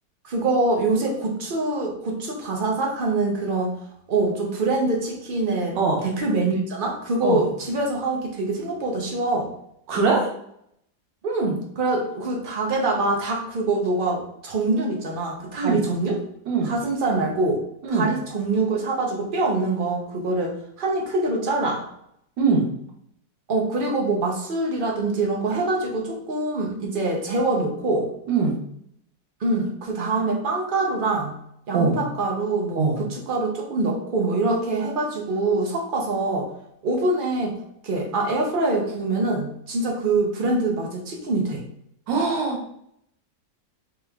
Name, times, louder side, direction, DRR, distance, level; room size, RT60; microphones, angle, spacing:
voice 1, 0.2-3.7 4.1-5.8 6.0-9.5 11.2-16.2 16.6-17.6 17.9-21.8 23.5-28.1 29.4-31.3 31.7-36.5 36.8-37.6 37.8-41.6, right 2 dB, 65° right, 0 dB, 0.5 m, -24 dB
voice 2, 9.9-10.3 15.6-15.8 16.5-16.7 17.8-18.1 22.4-22.6 28.3-28.6 31.7-32.0 32.7-33.0 42.1-42.6, right 4 dB, 80° right, 0 dB, 1.6 m, -21 dB
3.5 x 3.0 x 3.4 m, 0.73 s
omnidirectional pair, 1.9 m